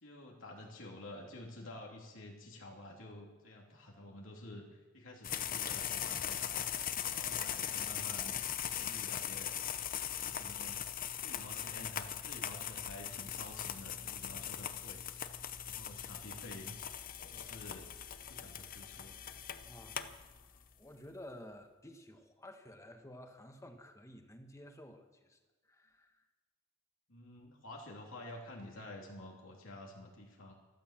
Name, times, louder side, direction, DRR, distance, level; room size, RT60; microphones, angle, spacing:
voice 1, 0.0-6.7 7.0-8.3 8.7-10.8 11.2-16.7 17.3-17.9 18.3-19.1 27.1-30.5, left 1 dB, 75° left, -1 dB, 3.0 m, -50 dB
sound 1, 5.2-20.7, left 9 dB, 45° left, 0.8 m, -40 dB
voice 2, 19.7-25.4 25.6-26.2, left 1 dB, 15° left, 5 dB, 1.5 m, -53 dB
13.5 x 13.0 x 7.5 m, 1.2 s
head